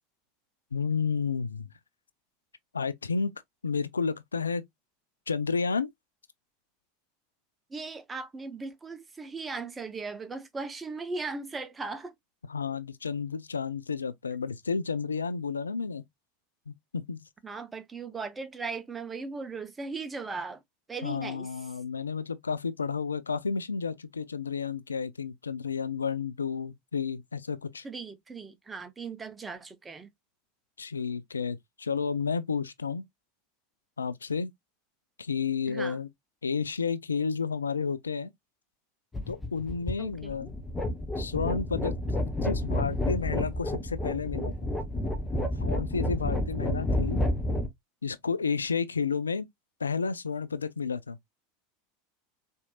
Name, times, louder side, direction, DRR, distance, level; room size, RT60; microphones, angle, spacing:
voice 1, 0.7-1.7 2.7-3.3 3.6-4.6 5.3-5.9 12.5-16.0 16.7-17.2 21.0-27.8 30.8-33.0 34.0-34.5 35.2-36.1 36.4-38.3 39.3-40.5 41.2-41.9 42.4-44.5 45.4-47.2 48.0-49.5 49.8-51.2, left 5 dB, 80° left, 0.3 m, -31 dB
voice 2, 7.7-12.1 17.4-20.6 20.9-21.5 27.8-30.1 35.7-36.0 40.0-40.4, right 4 dB, 20° right, 0.8 m, -38 dB
sound 1, 39.1-47.7, left 1 dB, 15° left, 0.9 m, -30 dB
4.3 x 2.7 x 2.2 m
figure-of-eight pair, 80°, 0 cm